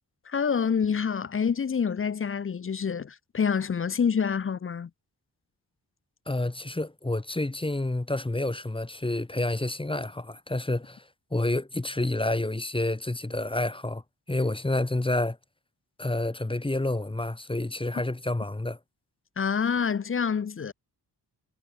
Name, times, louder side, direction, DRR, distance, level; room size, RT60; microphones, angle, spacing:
voice 1, 0.3-4.9 19.4-20.7, left 6 dB, 30° left, 0.5 m, -27 dB
voice 2, 6.3-11.0 11.3-14.0 14.3-15.4 16.0-18.8, left 2 dB, 10° left, 1.5 m, -29 dB
wide cardioid pair, 120°, 42 cm